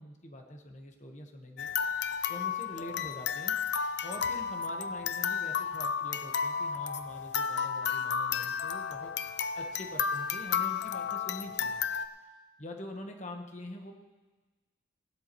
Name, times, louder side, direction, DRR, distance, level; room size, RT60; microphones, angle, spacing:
voice 1, 0.0-1.7 2.3-3.6 4.0-9.1 9.5-11.8 12.6-13.9, left 1 dB, 35° left, 3 dB, 1.2 m, -44 dB
sound 1, 1.6-12.1, left 6 dB, 55° left, 0.5 m, -32 dB
18.0 x 12.5 x 3.1 m, 1.3 s
head